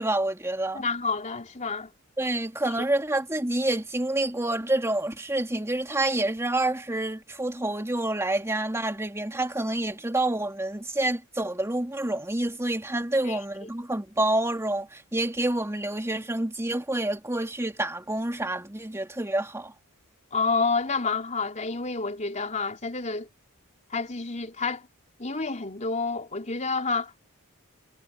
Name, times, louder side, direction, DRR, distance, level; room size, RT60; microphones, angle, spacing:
voice 1, 0.0-0.8 2.2-19.7, right 1 dB, 10° right, 2.6 m, -28 dB
voice 2, 0.7-1.9 2.6-2.7 13.2-13.4 20.3-23.3 23.9-24.8 25.2-27.3, left 4 dB, 35° left, 4.0 m, -29 dB
head